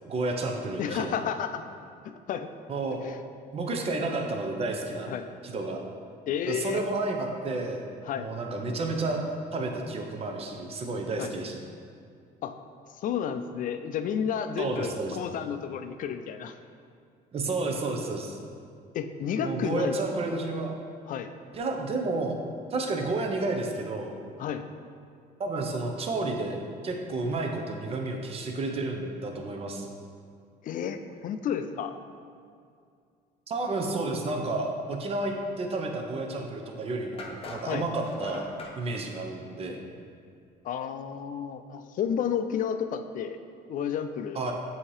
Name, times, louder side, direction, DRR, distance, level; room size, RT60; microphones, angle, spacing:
voice 1, 0.1-1.2 2.7-3.0 3.5-5.1 5.4-5.8 6.5-7.9 8.1-9.2 9.5-11.6 14.6-15.2 17.3-18.4 19.4-20.8 21.5-22.4 22.7-24.1 25.4-26.6 26.8-29.9 33.5-38.5 38.8-39.8 44.3-44.5, right 2 dB, 35° right, 2 dB, 0.7 m, -31 dB
voice 2, 0.8-1.6 2.0-2.5 3.0-3.1 5.1-5.2 6.3-6.8 8.1-8.3 11.2-11.3 12.4-12.6 13.0-16.5 18.9-19.9 21.1-21.3 24.4-24.7 30.6-32.0 37.6-37.8 40.6-43.4 43.7-44.4, left 8 dB, 50° left, 9 dB, 0.4 m, -31 dB
sound 1, 37.2-38.8, left 2 dB, 35° left, 0.8 m, -41 dB
7.2 x 2.8 x 4.7 m, 2.3 s
cardioid pair, 110°, 17 cm